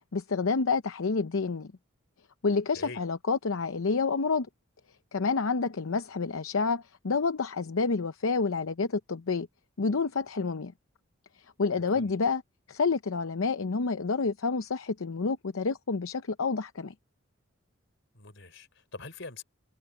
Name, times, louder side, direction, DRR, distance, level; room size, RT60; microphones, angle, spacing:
voice 1, 0.1-1.7 2.4-4.5 5.1-9.5 9.8-10.7 11.6-12.4 12.7-16.9, left 4 dB, 85° left, 0.7 m, -28 dB
voice 2, 11.8-12.1 18.1-19.4, left 3 dB, 60° left, 5.0 m, -44 dB
head